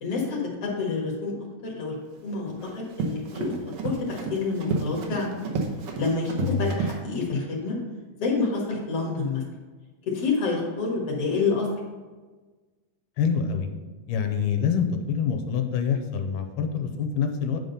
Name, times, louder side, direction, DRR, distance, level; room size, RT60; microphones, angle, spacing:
voice 1, 0.0-1.3 1.7-1.9 2.2-3.5 3.8-5.3 6.0-6.3 6.6-7.8 8.2-9.4 10.1-11.7, left 4 dB, 55° left, -2 dB, 2.1 m, -28 dB
Run, 2.1-7.0, right 4 dB, 85° right, 1.2 m, -31 dB
voice 2, 13.2-13.7 14.1-17.6, left 6 dB, 80° left, 5 dB, 2.1 m, -26 dB
9.3 x 3.8 x 5.4 m, 1.3 s
omnidirectional pair, 3.8 m